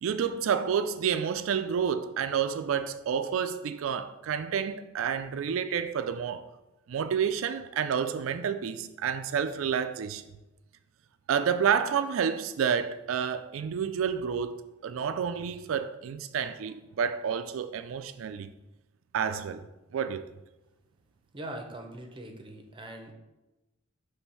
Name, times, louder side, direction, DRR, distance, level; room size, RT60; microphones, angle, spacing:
voice 1, 0.0-6.5 6.9-10.2 11.3-18.5 19.1-19.6 19.9-20.2, right 7 dB, 85° right, 0.4 m, -29 dB
voice 2, 21.3-23.1, right 1 dB, 25° right, 0.7 m, -41 dB
6.2 x 3.4 x 5.5 m
head